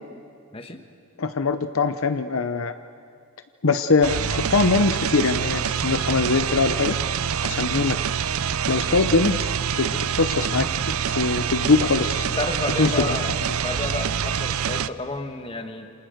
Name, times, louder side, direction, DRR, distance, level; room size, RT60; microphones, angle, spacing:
voice 1, 0.5-0.8 7.7-7.8 12.2-15.9, left 2 dB, 25° left, 6 dB, 1.6 m, -31 dB
voice 2, 1.2-2.7 3.6-7.0 7.4-8.0 8.7-10.7 11.1-12.3 12.8-13.2, left 4 dB, 65° left, 9 dB, 0.8 m, -22 dB
sound 1, 4.0-14.9, right 7 dB, 75° right, 0.6 m, -26 dB
28.5 x 26.5 x 6.6 m, 2.4 s
head